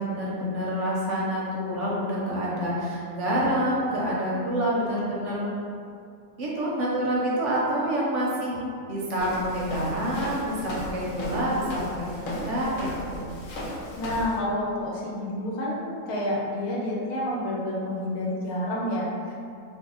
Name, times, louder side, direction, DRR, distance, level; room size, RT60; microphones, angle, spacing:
voice 1, 0.0-5.5 6.4-8.6 8.9-13.2, equal, 65° right, -5 dB, 0.8 m, -27 dB
Walk footsteps, 9.2-14.4, left 1 dB, 70° left, 0.9 m, -36 dB
voice 2, 14.0-19.3, left 1 dB, 90° left, -4 dB, 1.1 m, -29 dB
2.7 x 2.0 x 3.7 m, 2.4 s
omnidirectional pair, 1.5 m